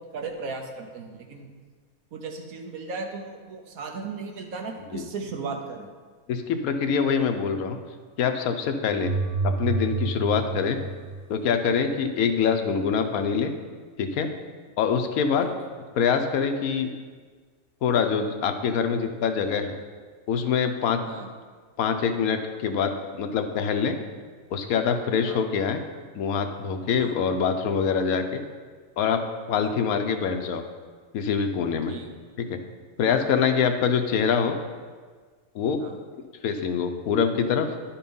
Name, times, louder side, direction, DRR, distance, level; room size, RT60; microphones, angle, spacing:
voice 1, 0.0-1.5 2.1-5.9 15.4-15.5 21.0-21.3 25.2-25.4 27.0-27.1 29.6-29.7 31.9-32.1 33.0-33.2 35.8-36.0, right 4 dB, 75° right, 3 dB, 1.4 m, -36 dB
voice 2, 6.3-7.8 8.2-9.1 9.4-10.8 11.3-13.5 14.0-14.3 14.8-15.5 15.9-16.9 17.8-19.8 20.3-21.0 21.8-23.9 24.5-25.8 26.1-28.4 29.0-29.2 29.5-30.6 31.1-32.0 32.4-32.6 33.0-34.6 35.5-35.8 36.4-37.7, left 6 dB, 85° left, 6 dB, 1.1 m, -24 dB
sound 1, 8.9-11.7, right 3 dB, 40° right, 0.7 m, -29 dB
10.5 x 4.4 x 5.4 m, 1.5 s
omnidirectional pair, 1.5 m